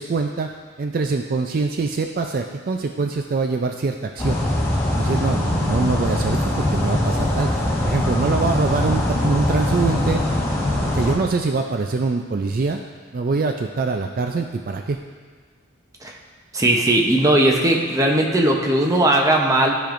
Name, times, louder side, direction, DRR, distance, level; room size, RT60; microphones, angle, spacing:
voice 1, 0.0-4.4 5.0-10.2 10.8-12.8 13.1-15.0, right 4 dB, 45° right, 4 dB, 0.4 m, -24 dB
sound 1, 4.2-11.1, left 1 dB, 15° left, 1.4 m, -22 dB
voice 2, 16.5-19.7, right 1 dB, 15° right, 0 dB, 0.7 m, -18 dB
14.5 x 5.1 x 2.5 m, 1.5 s
head